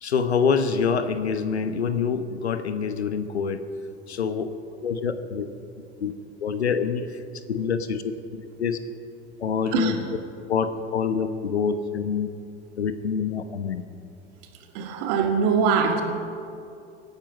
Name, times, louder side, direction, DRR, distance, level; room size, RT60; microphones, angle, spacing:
voice 1, 0.0-3.6 4.1-4.5 4.8-5.5 6.0-6.1 6.4-8.8 9.4-10.0 10.5-12.3 12.8-13.8, left 6 dB, 85° left, 11 dB, 1.0 m, -26 dB
voice 2, 14.7-16.0, right 6 dB, 60° right, 4 dB, 2.4 m, -22 dB
25.0 x 9.5 x 5.3 m, 2.5 s
figure-of-eight pair, 75°, 32 cm